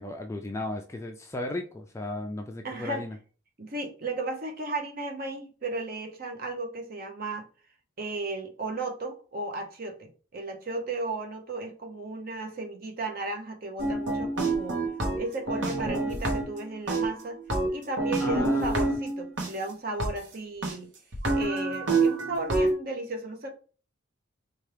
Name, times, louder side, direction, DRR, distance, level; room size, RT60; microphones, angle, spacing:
voice 1, 0.0-3.2 18.2-19.0, left 1 dB, 15° left, 4 dB, 0.3 m, -35 dB
voice 2, 2.6-3.1 3.6-7.4 8.0-14.8 15.2-17.4 17.7-20.9 21.3-23.5, right 2 dB, 45° right, 3 dB, 0.7 m, -35 dB
sound 1, 13.8-16.6 16.9-19.5 20.0-20.1 20.6-20.7 21.1-22.7, right 2 dB, 65° right, 1.0 m, -27 dB
4.4 x 2.3 x 3.3 m, 0.38 s
head